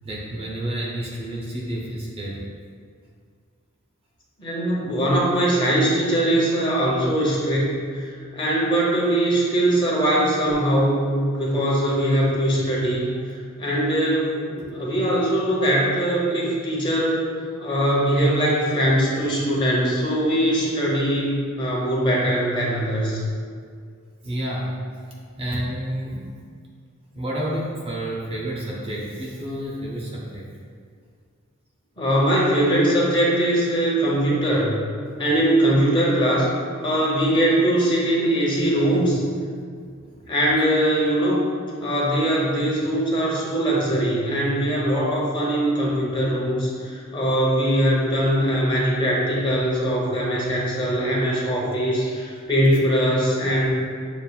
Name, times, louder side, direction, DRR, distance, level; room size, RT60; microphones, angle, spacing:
voice 1, 0.0-2.4 13.0-13.1 24.2-24.8 25.4-26.4 27.1-30.5 40.1-40.2, right 1 dB, 25° right, -4 dB, 0.5 m, -30 dB
voice 2, 4.4-17.2 17.6-23.2 32.0-34.7 35.2-36.5 36.8-39.2 40.3-41.4 41.8-53.7, right 1 dB, 25° left, -5 dB, 0.9 m, -21 dB
7.0 x 2.4 x 2.3 m, 2.1 s
head